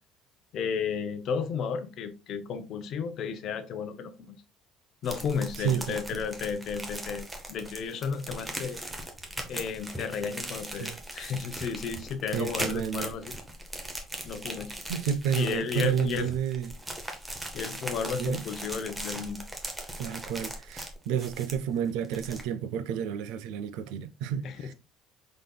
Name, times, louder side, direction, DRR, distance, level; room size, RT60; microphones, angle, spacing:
voice 1, 0.5-4.4 5.0-8.8 9.5-13.3 14.2-14.7 15.4-16.3 17.5-19.4 24.4-24.7, left 6 dB, 40° left, 0.6 m, -33 dB
sound 1, 5.0-21.8 22.0-22.4, right 1 dB, 10° right, 0.7 m, -39 dB
voice 2, 5.6-6.2 10.8-11.0 12.3-13.1 14.9-16.7 18.2-18.4 20.0-24.7, right 8 dB, 80° right, 0.4 m, -31 dB
5.1 x 3.9 x 2.3 m
cardioid pair, 175°, 0 cm